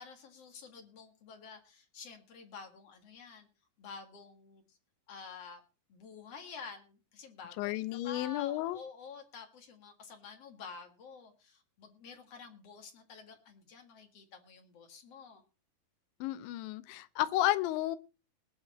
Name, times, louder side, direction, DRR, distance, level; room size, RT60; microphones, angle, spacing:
voice 1, 0.0-3.5 3.8-4.8 5.1-5.6 5.9-15.4, left 5 dB, 50° left, 5 dB, 2.0 m, -50 dB
voice 2, 7.6-8.8 16.2-18.0, left 15 dB, 90° left, 13 dB, 3.1 m, -32 dB
20.0 x 8.0 x 4.2 m, 0.32 s
omnidirectional pair, 5.1 m